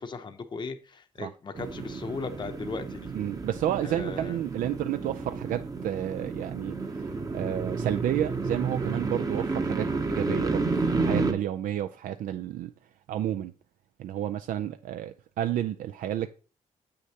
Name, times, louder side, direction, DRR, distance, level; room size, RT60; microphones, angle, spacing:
voice 1, 0.0-3.1 3.8-4.4, left 4 dB, 35° left, 0.7 m, -37 dB
sound 1, 1.6-11.3, right 3 dB, 25° right, 0.8 m, -31 dB
voice 2, 3.1-12.7 13.1-13.5 14.0-16.3, right 11 dB, 85° right, 0.4 m, -31 dB
7.7 x 6.5 x 2.8 m
cardioid pair, 100°, 14 cm